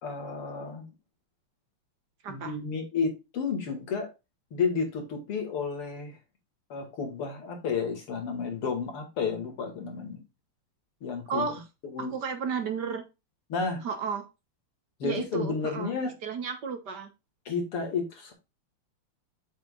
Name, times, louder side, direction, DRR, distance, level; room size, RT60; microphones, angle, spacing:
voice 1, 0.0-0.9 2.3-4.1 4.5-6.2 6.7-10.2 11.0-11.5 11.9-12.1 13.5-13.8 15.0-16.1 17.5-18.3, left 5 dB, 85° left, 3.1 m, -31 dB
voice 2, 2.2-2.5 11.3-11.6 12.0-13.0 13.8-14.3 15.0-15.9 16.2-17.1, right 5 dB, 55° right, 1.6 m, -33 dB
7.8 x 7.5 x 2.4 m
omnidirectional pair, 2.4 m